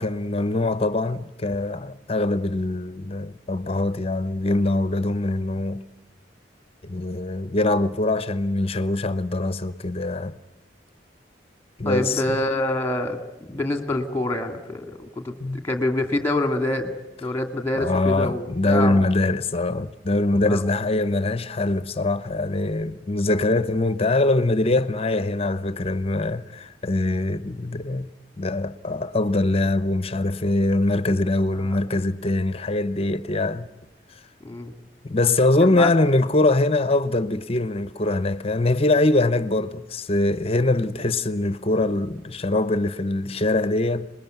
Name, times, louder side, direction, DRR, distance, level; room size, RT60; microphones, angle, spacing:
voice 1, 0.0-5.8 6.8-10.3 11.8-12.4 15.4-15.6 17.8-28.1 28.4-33.7 35.0-44.1, left 2 dB, 35° left, 0.8 m, -23 dB
voice 2, 11.8-13.2 13.5-16.9 17.2-19.0 20.5-20.7 31.5-31.8 34.4-34.7 35.6-35.9, left 1 dB, 15° left, 2.2 m, -26 dB
26.5 x 21.0 x 9.3 m
head